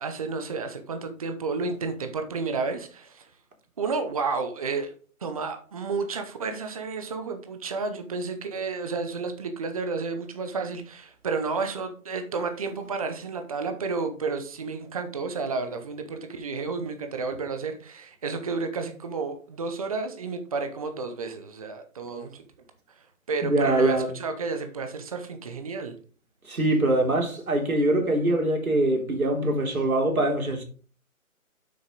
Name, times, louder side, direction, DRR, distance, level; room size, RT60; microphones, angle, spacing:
voice 1, 0.0-3.3 3.8-4.9 5.2-22.4 23.3-25.9, right 4 dB, 25° right, 0.8 m, -31 dB
voice 2, 23.4-24.1 26.4-30.6, right 1 dB, 90° right, 3.5 m, -23 dB
7.9 x 6.4 x 3.9 m
hypercardioid pair, 160°, 42 cm